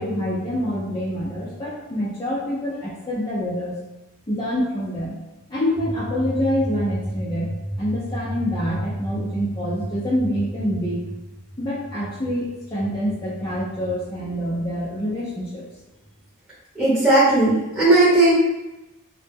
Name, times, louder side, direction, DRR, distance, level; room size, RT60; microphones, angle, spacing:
voice 1, 0.0-3.8 4.3-5.2 5.5-11.0 11.6-15.7, equal, 20° left, -8 dB, 0.4 m, -26 dB
voice 2, 16.7-18.3, right 2 dB, 5° right, -12 dB, 0.7 m, -16 dB
2.0 x 2.0 x 3.3 m, 1.0 s
head